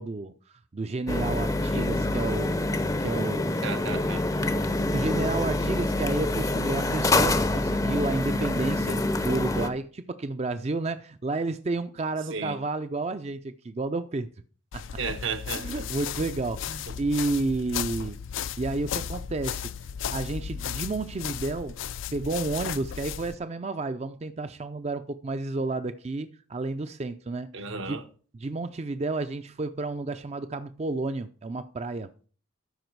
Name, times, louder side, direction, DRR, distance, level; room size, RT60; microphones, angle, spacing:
voice 1, 0.0-3.6 4.4-14.3 14.7-14.8 15.5-18.2 18.6-19.7 20.1-21.7 22.1-28.0 28.3-32.1, right 3 dB, 30° right, 0.4 m, -31 dB
sound 1, 1.1-9.7, left 2 dB, 15° left, 0.5 m, -26 dB
voice 2, 3.6-4.2 12.3-12.6 15.0-15.9 27.5-28.0, right 4 dB, 75° right, 1.0 m, -33 dB
sound 2, 14.7-23.4, left 8 dB, 70° left, 0.4 m, -35 dB
13.0 x 5.0 x 4.6 m
head